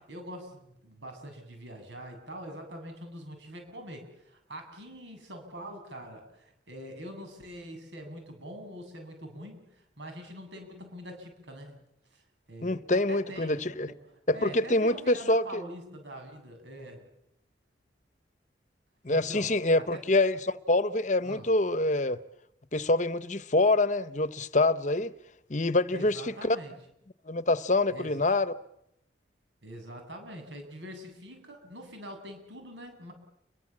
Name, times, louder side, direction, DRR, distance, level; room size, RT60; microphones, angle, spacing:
voice 1, 0.0-9.7 10.0-11.8 12.1-12.2 12.5-14.0 14.3-17.0 19.1-20.0 21.2-21.5 25.9-26.7 27.9-28.2 29.6-33.1, equal, 80° right, 7.9 m, -44 dB
voice 2, 12.6-13.9 14.3-15.6 19.0-22.2 22.7-25.1 25.5-26.6 27.3-28.5, left 2 dB, 40° left, 0.9 m, -26 dB
30.0 x 23.0 x 7.4 m
head